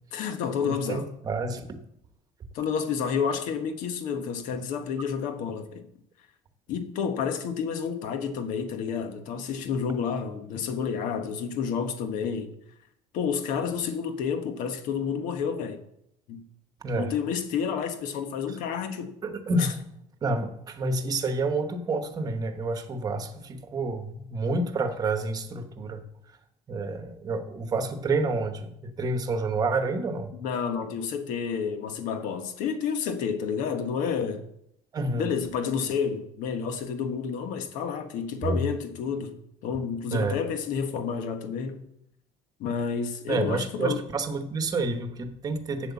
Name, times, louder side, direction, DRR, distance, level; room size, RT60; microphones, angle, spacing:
voice 1, 0.1-1.1 2.5-5.9 6.7-12.5 13.1-15.8 16.3-16.4 17.0-19.1 19.6-19.7 30.4-34.5 35.1-41.9 42.6-44.0, left 6 dB, 70° left, 1.2 m, -30 dB
voice 2, 0.6-1.8 16.8-17.1 19.2-19.8 20.2-26.0 26.7-30.3 34.9-35.3 38.4-38.6 40.1-40.4 43.3-45.9, right 3 dB, 25° right, 1.1 m, -29 dB
8.1 x 7.9 x 7.1 m
cardioid pair, 170°, 14 cm